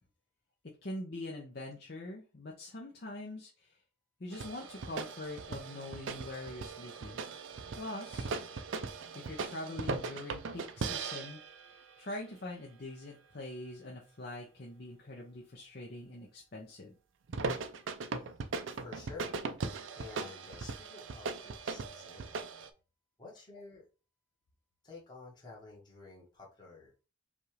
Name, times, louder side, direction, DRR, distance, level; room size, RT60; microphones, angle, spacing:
voice 1, 0.8-3.8 4.2-7.3 7.8-8.3 9.1-11.4 12.0-16.9, left 1 dB, 50° left, -1 dB, 0.7 m, -43 dB
sound 1, 4.3-12.0 17.3-22.7, right 4 dB, 75° right, 0.5 m, -39 dB
voice 2, 18.6-19.4 20.0-22.4 23.2-23.8 24.8-26.9, left 4 dB, 20° left, -4 dB, 1.4 m, -51 dB
5.2 x 2.5 x 3.2 m, 0.33 s
head